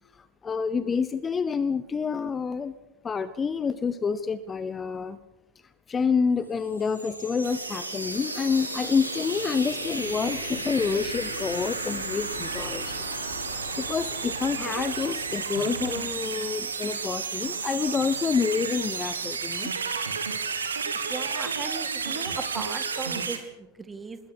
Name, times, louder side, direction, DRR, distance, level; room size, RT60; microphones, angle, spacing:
voice 1, 0.1-2.7 3.0-5.2 5.9-13.0 13.5-19.7, left 5 dB, 20° left, 14 dB, 1.0 m, -28 dB
sound 1, 6.4-18.1, equal, 85° left, 7.3 m, -37 dB
sound 2, 7.4-23.4, right 5 dB, 70° right, 3.0 m, -33 dB
voice 2, 21.1-24.2, right 4 dB, 15° right, 10 dB, 2.2 m, -37 dB
26.5 x 21.0 x 6.5 m, 0.97 s
figure-of-eight pair, 90°, 0 cm